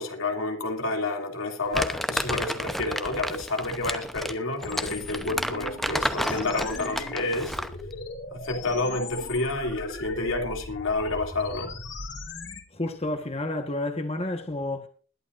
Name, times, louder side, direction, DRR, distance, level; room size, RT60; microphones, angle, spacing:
voice 1, 0.0-7.6 8.3-11.7, left 2 dB, 80° left, 2.7 m, -29 dB
Crumpling crinkling, 1.7-7.8, equal, ahead, 0.7 m, -31 dB
sound 1, 4.6-12.6, left 3 dB, 60° left, 2.6 m, -39 dB
voice 2, 12.7-14.9, left 1 dB, 30° left, 1.3 m, -30 dB
21.0 x 11.0 x 2.6 m
head